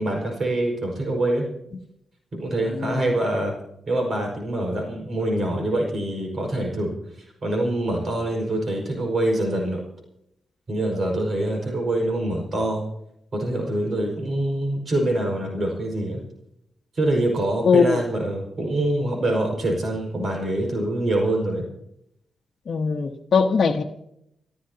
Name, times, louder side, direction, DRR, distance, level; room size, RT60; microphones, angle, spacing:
voice 1, 0.0-1.5 2.3-3.5 3.9-6.9 7.4-9.8 10.7-12.8 13.3-16.2 16.9-21.7, right 1 dB, 50° right, 1 dB, 5.3 m, -25 dB
voice 2, 17.6-18.0 22.7-23.8, left 5 dB, 55° left, 2 dB, 1.1 m, -20 dB
28.5 x 13.5 x 2.9 m, 0.78 s
cardioid pair, 70°, 0 cm